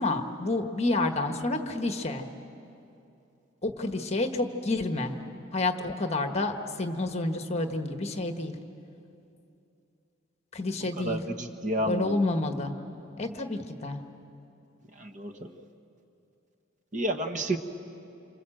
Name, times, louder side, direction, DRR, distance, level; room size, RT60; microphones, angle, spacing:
voice 1, 0.0-2.2 3.6-5.1 5.5-8.5 10.5-11.2 11.8-12.7 13.2-14.0, left 2 dB, 35° left, 6 dB, 1.4 m, -29 dB
voice 2, 11.0-12.2 15.0-15.5 16.9-17.6, right 1 dB, 40° right, 6 dB, 1.3 m, -30 dB
28.0 x 26.0 x 7.7 m, 2.7 s
head